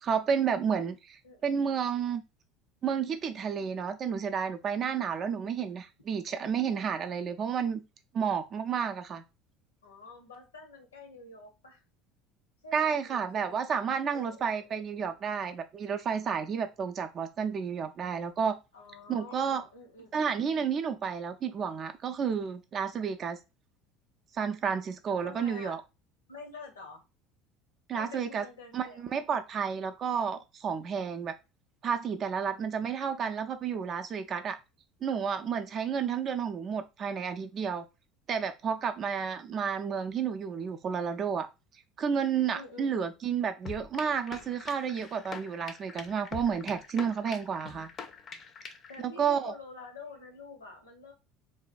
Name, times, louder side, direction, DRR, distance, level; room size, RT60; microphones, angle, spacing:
voice 1, 0.0-2.2 2.8-7.8 8.1-9.2 12.7-18.6 19.1-19.6 20.1-23.4 24.3-25.8 27.9-28.4 28.7-31.3 31.8-34.6 35.0-37.8 38.3-41.5 42.0-47.9 49.0-49.5, right 7 dB, 45° right, 7 dB, 0.4 m, -31 dB
voice 2, 9.8-11.8 12.6-13.5 14.1-14.8 18.7-20.3 25.2-25.8 26.3-27.0 27.9-29.1 42.5-43.1 48.9-51.1, left 3 dB, 85° left, 2 dB, 0.7 m, -48 dB
sound 1, 43.7-49.0, left 5 dB, 40° left, 0.4 m, -44 dB
2.6 x 2.2 x 2.4 m, 0.26 s
hypercardioid pair, 70°, 0 cm